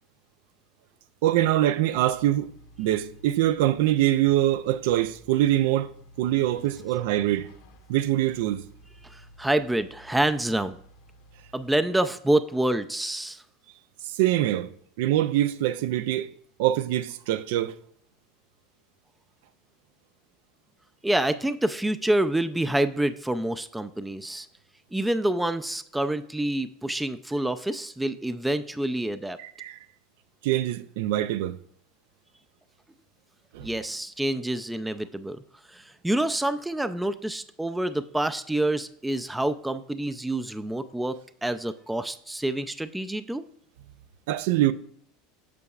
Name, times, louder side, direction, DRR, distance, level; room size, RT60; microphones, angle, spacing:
voice 1, 1.2-2.5 2.8-5.9 6.2-7.5 7.9-8.6 14.0-14.7 15.0-16.3 16.6-17.8 29.4-29.8 30.4-31.6 33.5-33.7 44.3-44.7, right 13 dB, 70° right, 0.4 m, -24 dB
sound 1, 1.9-11.7, left 1 dB, 70° left, 1.2 m, -52 dB
voice 2, 9.0-10.8 11.5-13.4 21.0-24.5 24.9-29.4 33.6-35.4 35.7-41.2 41.4-43.4, right 1 dB, 5° right, 0.4 m, -27 dB
8.3 x 6.8 x 2.4 m
hypercardioid pair, 95°, 0 cm